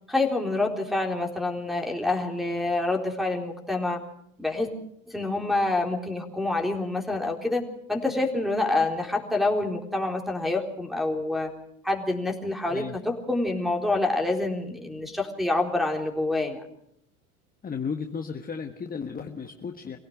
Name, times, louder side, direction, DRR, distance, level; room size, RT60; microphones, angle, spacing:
voice 1, 0.1-4.0 4.4-4.7 5.1-11.5 11.8-16.6, left 2 dB, ahead, 4 dB, 3.8 m, -27 dB
voice 2, 17.6-20.0, left 6 dB, 20° left, 5 dB, 1.5 m, -34 dB
25.0 x 17.0 x 6.5 m, 0.73 s
hypercardioid pair, 90°, 43 cm